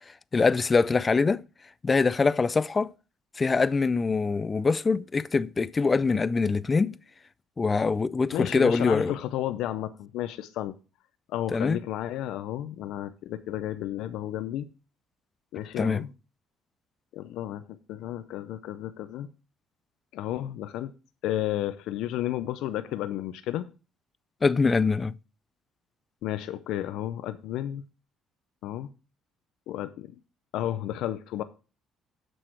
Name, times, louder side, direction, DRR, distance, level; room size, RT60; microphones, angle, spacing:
voice 1, 0.3-1.4 1.8-2.9 3.4-6.9 7.6-9.1 11.5-11.8 15.8-16.0 24.4-25.2, left 4 dB, 25° left, 0.4 m, -24 dB
voice 2, 8.3-10.7 11.3-14.7 15.5-16.1 17.1-17.6 17.9-19.3 20.1-20.9 21.2-23.7 26.2-27.8 28.6-28.9 29.7-30.1 30.5-31.4, left 13 dB, 80° left, 0.5 m, -32 dB
7.8 x 6.2 x 4.4 m
cardioid pair, 95°, 0 cm